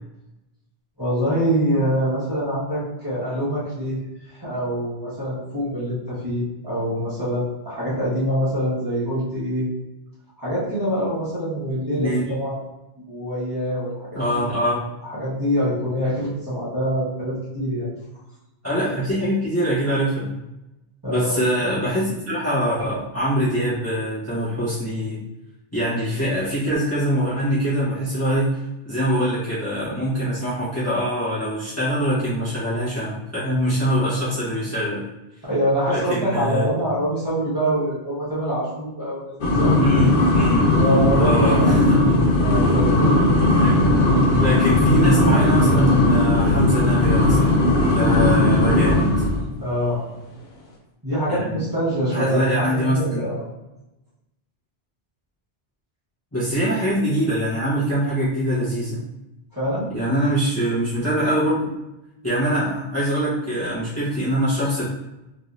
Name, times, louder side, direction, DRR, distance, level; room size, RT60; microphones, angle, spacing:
voice 1, 1.0-4.0 4.3-9.6 10.4-12.6 13.1-14.4 15.0-17.9 21.0-21.4 35.4-39.7 40.7-41.7 42.3-43.0 49.6-50.0 51.0-53.4 59.5-59.9, equal, 20° right, -11 dB, 1.4 m, -25 dB
voice 2, 14.1-14.9 18.6-20.3 21.1-25.2 25.7-35.1 35.9-36.6 39.8-40.8 41.2-42.1 43.6-43.8 44.3-47.6 47.9-49.1 51.3-51.6 52.1-53.3 56.3-59.0 59.9-61.7 62.2-64.8, equal, 15° left, -12 dB, 1.1 m, -23 dB
sound 1, 39.4-49.5, left 1 dB, 60° left, 0.8 m, -17 dB
3.6 x 3.1 x 2.6 m, 0.95 s
omnidirectional pair, 1.1 m